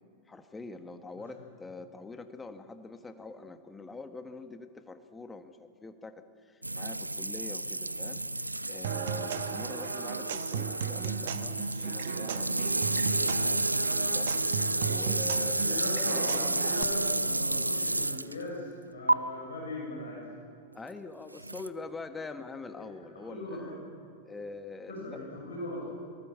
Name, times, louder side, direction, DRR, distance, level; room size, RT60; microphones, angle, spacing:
voice 1, 0.3-8.2 8.7-16.2 20.7-23.7 24.2-25.2, left 3 dB, 10° left, 8 dB, 1.5 m, -44 dB
sound 1, 6.6-18.4 19.1-19.2 21.4-21.7, right 2 dB, 85° right, 0.5 m, -31 dB
Human voice / Acoustic guitar / Percussion, 8.8-16.8, right 8 dB, 60° right, 1.1 m, -36 dB
voice 2, 15.4-20.3 22.7-22.9 23.1-23.8 24.9-25.9, left 1 dB, 70° left, -2 dB, 7.1 m, -39 dB
23.0 x 19.0 x 7.5 m, 2.5 s
figure-of-eight pair, 90°, 0 cm